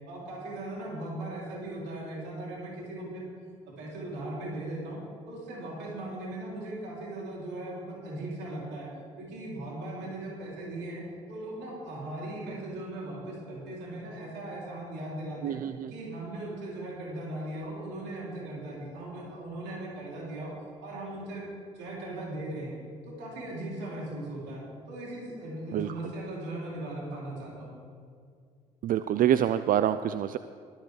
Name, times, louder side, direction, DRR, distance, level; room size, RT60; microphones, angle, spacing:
voice 1, 0.1-3.2 3.7-5.0 5.3-8.9 9.2-15.6 15.9-20.5 20.8-21.5 21.7-22.8 23.1-27.7, right 1 dB, 65° right, -4 dB, 2.9 m, -38 dB
voice 2, 15.4-15.9 25.7-25.9 28.8-30.4, right 10 dB, 50° right, 12 dB, 0.4 m, -26 dB
21.0 x 8.9 x 3.2 m, 2.2 s
hypercardioid pair, 50°, 19 cm